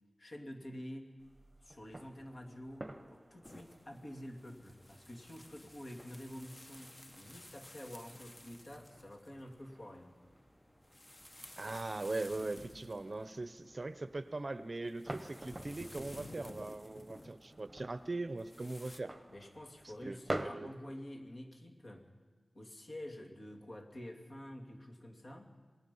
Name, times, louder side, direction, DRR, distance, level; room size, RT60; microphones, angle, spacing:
voice 1, 0.2-1.1 1.6-10.2 19.3-22.1 22.5-25.5, left 1 dB, 50° left, 1 dB, 2.8 m, -48 dB
sound 1, 1.2-20.5, right 1 dB, 20° right, 1.2 m, -50 dB
sound 2, 3.4-19.0, left 1 dB, 25° left, 1.1 m, -55 dB
voice 2, 11.6-19.1 20.0-20.7, right 2 dB, 40° right, 12 dB, 0.7 m, -40 dB
26.5 x 19.5 x 5.6 m, 1.4 s
wide cardioid pair, 85°, 0 cm